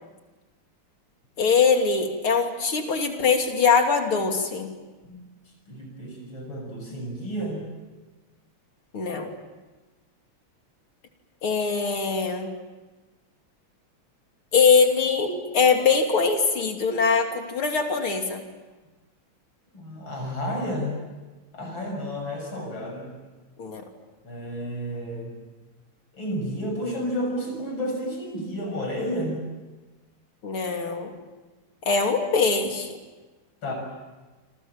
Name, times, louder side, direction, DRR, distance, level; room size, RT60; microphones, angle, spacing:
voice 1, 1.4-4.7 8.9-9.3 11.4-12.5 14.5-18.4 23.6-23.8 30.4-31.1 31.9-33.0, left 5 dB, 85° left, 3 dB, 3.9 m, -22 dB
voice 2, 5.7-7.6 19.7-21.0 21.5-23.1 24.2-25.3 26.1-29.4 33.6-33.7, equal, 65° left, 2 dB, 7.4 m, -31 dB
27.5 x 26.5 x 7.3 m, 1.2 s
omnidirectional pair, 2.3 m